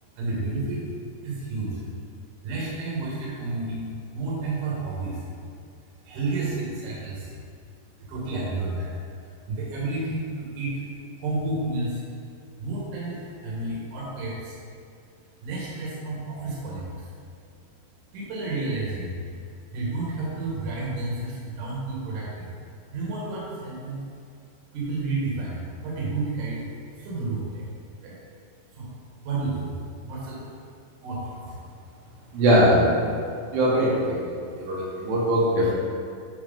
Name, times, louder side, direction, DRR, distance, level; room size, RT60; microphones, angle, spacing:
voice 1, 0.2-0.8 1.2-1.8 2.4-5.3 6.0-7.3 8.0-8.9 9.2-10.8 11.2-12.0 12.6-14.6 15.4-17.1 18.1-19.1 19.7-22.5 22.9-24.0 24.7-27.7 28.0-28.2 28.7-28.9 29.2-30.4 31.0-31.5, right 2 dB, 55° right, -6 dB, 2.5 m, -31 dB
voice 2, 32.3-33.2 33.5-34.2 34.6-35.7, equal, 75° right, -7 dB, 3.4 m, -21 dB
9.4 x 3.2 x 5.1 m, 2.3 s
omnidirectional pair, 5.1 m